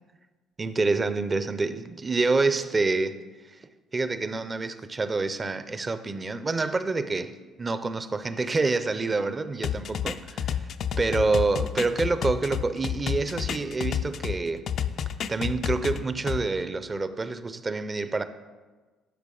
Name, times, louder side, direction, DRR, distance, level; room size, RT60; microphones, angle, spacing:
voice 1, 0.6-3.2 3.9-10.7 11.0-14.7 15.3-18.2, right 3 dB, 30° right, 0.6 m, -27 dB
sound 1, 9.6-14.4 14.7-16.4, left 9 dB, 60° left, 0.4 m, -30 dB
10.0 x 6.9 x 3.9 m
supercardioid pair, 85°, 0 cm